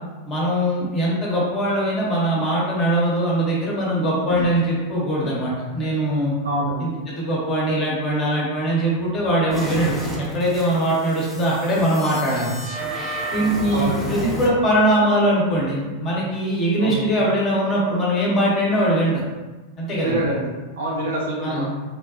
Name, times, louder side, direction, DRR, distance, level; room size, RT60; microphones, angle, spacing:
voice 1, 0.3-6.3 6.8-12.6 13.3-19.2 19.8-20.2 21.4-21.7, right 1 dB, 30° left, -5 dB, 1.0 m, -21 dB
voice 2, 6.4-6.8 13.7-14.2 16.8-17.1 20.0-20.5 20.8-21.7, right 1 dB, 65° right, -5 dB, 0.9 m, -26 dB
sound 1, 9.5-14.5, right 2 dB, ahead, 0.7 m, -31 dB
3.4 x 2.2 x 2.6 m, 1.2 s
figure-of-eight pair, 90°, 0 cm